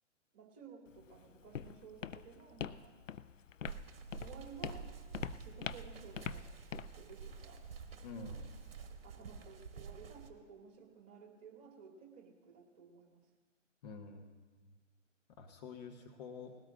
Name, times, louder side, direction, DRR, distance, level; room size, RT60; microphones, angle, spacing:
voice 1, 0.3-3.0 3.8-3.9 4.2-4.9 5.3-6.5 6.9-7.7 9.0-13.3, right 6 dB, 30° right, 1 dB, 2.4 m, -55 dB
Walk footsteps, 0.9-8.8, left 8 dB, 80° left, 0.6 m, -46 dB
sound 1, 3.6-10.3, right 5 dB, 50° right, 1.6 m, -48 dB
voice 2, 8.0-8.5 13.8-14.7 15.4-16.6, left 4 dB, 35° left, 3 dB, 1.2 m, -48 dB
20.0 x 16.5 x 2.6 m, 1.4 s
figure-of-eight pair, 125°, 38 cm